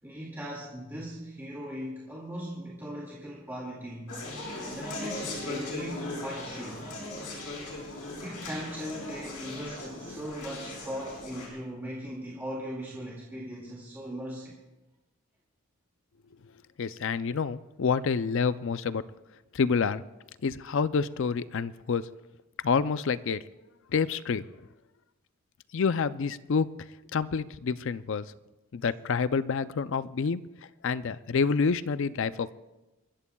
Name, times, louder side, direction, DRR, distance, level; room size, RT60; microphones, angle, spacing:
voice 1, 0.0-4.2 4.7-6.9 8.1-14.6, equal, 10° right, -5 dB, 2.1 m, -39 dB
Conversation, 4.1-11.5, left 2 dB, 85° left, 4.7 m, -38 dB
voice 2, 16.8-19.0 19.5-20.0 20.4-22.1 22.6-23.4 23.9-24.4 25.7-26.7 27.1-28.3 28.7-30.4 30.8-32.5, left 5 dB, 55° left, 15 dB, 0.4 m, -28 dB
28.5 x 14.5 x 2.3 m, 1.1 s
head